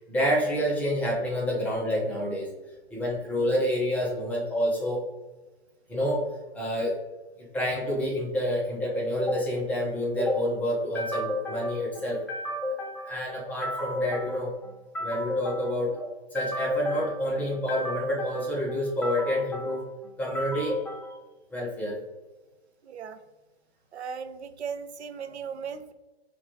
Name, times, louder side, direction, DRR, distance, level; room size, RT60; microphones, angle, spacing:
voice 1, 0.1-2.5 2.9-5.0 5.9-6.2 6.5-6.9 7.4-21.2 21.5-22.0, equal, 5° left, -4 dB, 0.4 m, -28 dB
voice 2, 22.8-23.2 23.9-25.9, right 6 dB, 85° right, 10 dB, 0.5 m, -37 dB
5.6 x 2.3 x 2.7 m, 1.2 s
hypercardioid pair, 125°, 32 cm